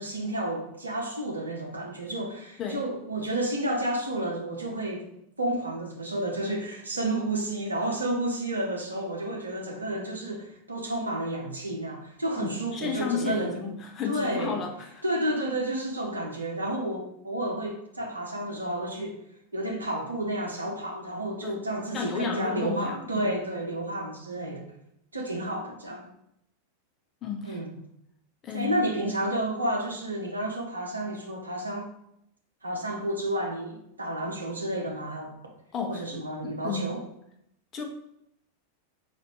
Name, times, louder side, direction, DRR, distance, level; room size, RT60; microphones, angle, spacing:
voice 1, 0.0-5.1 5.4-13.6 14.0-14.6 15.0-19.2 19.5-24.7 25.1-26.1 27.4-27.7 28.5-31.9 32.6-35.3 35.9-37.0, right 1 dB, 80° right, 1 dB, 0.9 m, -31 dB
voice 2, 12.4-15.0 21.4-21.6 21.9-23.3 27.2-27.6 28.4-28.8 35.7-37.0 37.7-37.8, left 5 dB, 30° left, 2 dB, 0.9 m, -33 dB
4.2 x 2.6 x 4.7 m, 0.76 s
figure-of-eight pair, 90°, 0 cm